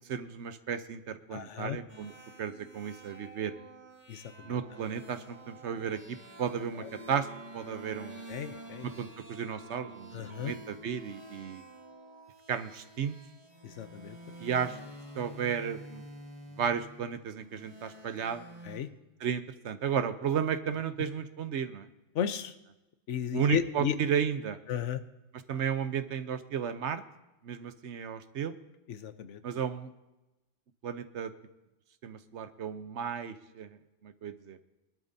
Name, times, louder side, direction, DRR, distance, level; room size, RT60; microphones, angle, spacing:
voice 1, 0.0-2.1 2.4-3.5 4.5-7.3 7.5-8.3 8.8-11.6 12.5-13.2 14.4-14.8 15.2-16.0 16.6-18.5 19.2-21.9 23.3-24.6 25.5-27.0 27.4-28.5 29.4-29.9 30.8-31.3 32.0-33.7 34.0-34.6, right 7 dB, 75° right, 11 dB, 1.1 m, -33 dB
voice 2, 1.3-1.8 4.1-4.6 6.8-6.9 8.3-8.9 10.1-10.6 13.6-14.2 18.6-18.9 22.1-22.5 23.1-24.0 24.7-25.0 28.9-29.6, left 9 dB, 80° left, 11 dB, 1.1 m, -34 dB
sound 1, 1.9-18.8, right 1 dB, 30° right, 2.7 m, -49 dB
22.0 x 12.0 x 2.7 m, 0.99 s
omnidirectional pair, 1.2 m